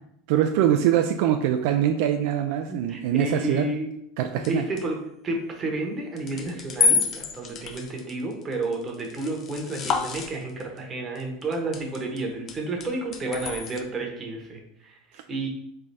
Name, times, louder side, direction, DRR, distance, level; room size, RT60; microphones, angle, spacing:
voice 1, 0.3-3.7 4.2-4.7, right 10 dB, 65° right, 6 dB, 0.3 m, -23 dB
voice 2, 2.7-3.9 4.5-15.5, right 2 dB, 20° right, 1 dB, 0.9 m, -31 dB
sound 1, 4.4-4.8 6.2-10.8 11.2-12.2 12.5-13.8, left 6 dB, 35° left, 0.4 m, -28 dB
3.6 x 3.3 x 4.0 m, 0.74 s
supercardioid pair, 145°, 0 cm